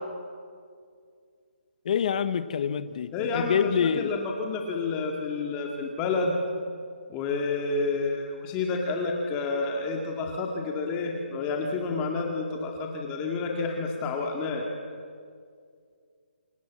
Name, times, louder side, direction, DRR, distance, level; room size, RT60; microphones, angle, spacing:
voice 1, 1.8-4.1, left 7 dB, 40° left, 12 dB, 1.1 m, -26 dB
voice 2, 3.1-6.4 7.1-14.6, left 3 dB, 15° left, 1 dB, 2.1 m, -29 dB
29.0 x 24.5 x 7.5 m, 2.2 s
hypercardioid pair, 165°, 6 cm